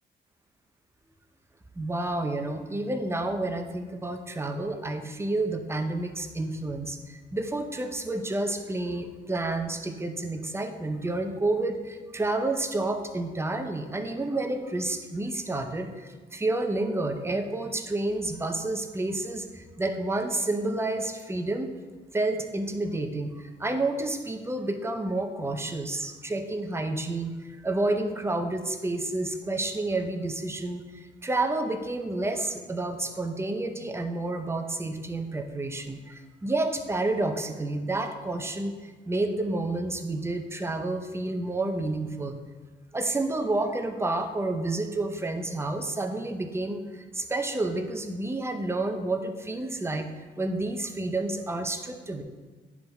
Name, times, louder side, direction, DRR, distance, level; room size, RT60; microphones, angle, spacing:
voice 1, 1.8-21.7 22.1-42.4 42.9-52.2, right 2 dB, 15° right, 6 dB, 0.6 m, -30 dB
10.0 x 3.6 x 3.4 m, 1.4 s
cardioid pair, 90°, 20 cm